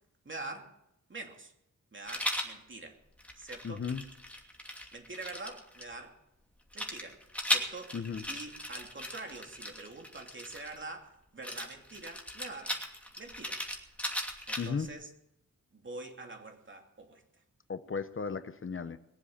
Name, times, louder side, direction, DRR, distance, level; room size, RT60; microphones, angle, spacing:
voice 1, 0.2-0.8 1.1-1.5 1.9-3.0 3.3-3.8 4.9-6.2 6.7-8.0 8.3-12.8 13.2-13.6 14.5-15.1 15.7-17.2, right 2 dB, 40° right, 2.8 m, -45 dB
Rattle, 2.1-2.5 3.2-5.8 6.7-10.8 11.4-14.9, left 1 dB, 5° left, 2.6 m, -37 dB
voice 2, 3.6-4.0 7.9-8.2 14.6-14.9 17.7-19.0, left 5 dB, 45° left, 0.8 m, -35 dB
21.5 x 7.6 x 8.4 m
wide cardioid pair, 110°, 30 cm